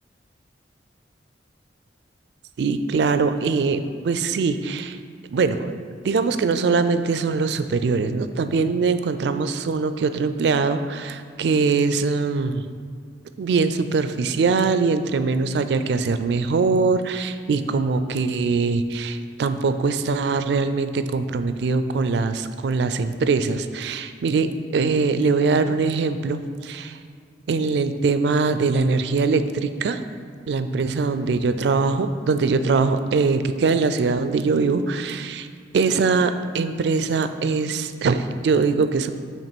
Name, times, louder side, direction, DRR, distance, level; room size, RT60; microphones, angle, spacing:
voice 1, 2.6-5.0 5.3-12.6 13.4-27.0 27.5-30.0 30.5-35.5 35.7-39.1, right 4 dB, 65° right, 10 dB, 0.3 m, -22 dB
7.1 x 3.0 x 5.9 m, 2.1 s
head